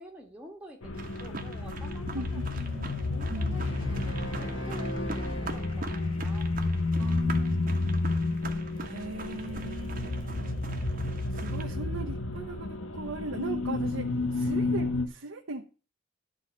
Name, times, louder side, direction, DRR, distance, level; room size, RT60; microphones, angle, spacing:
voice 1, 0.0-7.2 14.2-14.4, equal, 5° right, 0 dB, 1.6 m, -50 dB
sound 1, 0.8-15.1, left 2 dB, 85° left, 1.0 m, -31 dB
sound 2, 0.9-11.7, right 3 dB, 40° right, 1.2 m, -43 dB
voice 2, 2.1-3.0 3.3-3.6 7.0-7.9 8.8-10.6 11.3-14.1 14.3-15.6, right 3 dB, 90° right, 1 dB, 1.0 m, -39 dB
sound 3, 3.4-6.3, equal, 60° left, 2.5 m, -36 dB
11.0 x 4.1 x 7.2 m, 0.36 s
head